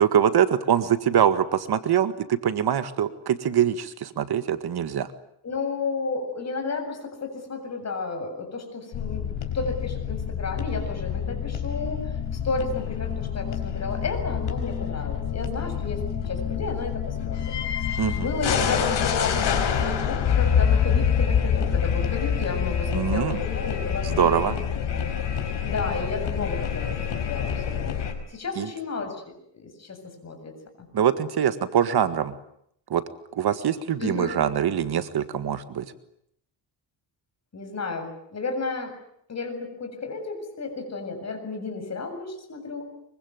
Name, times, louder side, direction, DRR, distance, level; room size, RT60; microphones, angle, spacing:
voice 1, 0.0-5.1 18.0-18.3 22.9-23.4 24.0-24.6 28.5-28.7 30.9-32.3 32.9-33.0 33.3-35.9, right 9 dB, 60° right, 11 dB, 1.8 m, -23 dB
voice 2, 5.4-12.1 12.4-17.5 17.9-24.6 24.9-25.0 25.6-28.0 28.3-29.2 29.5-30.5 30.8-30.9 34.0-34.4 37.5-38.9 39.3-42.9, left 3 dB, 35° left, 5 dB, 7.6 m, -32 dB
sound 1, 8.9-28.1, left 8 dB, 70° left, 5.0 m, -26 dB
24.5 x 24.0 x 9.5 m, 0.72 s
cardioid pair, 140°, 44 cm